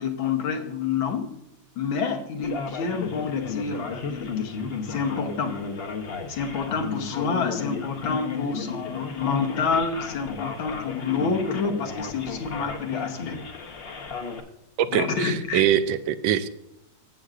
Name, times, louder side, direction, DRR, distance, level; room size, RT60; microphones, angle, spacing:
voice 1, 0.0-1.3 1.8-4.5 4.9-5.6 6.3-13.4 14.9-15.6, left 5 dB, 85° left, 5 dB, 1.9 m, -28 dB
Male speech man speaking, 2.4-14.4, left 5 dB, 45° left, 0.8 m, -33 dB
voice 2, 14.8-16.5, right 10 dB, 80° right, 12 dB, 1.3 m, -23 dB
15.0 x 7.8 x 2.5 m, 0.83 s
omnidirectional pair, 2.1 m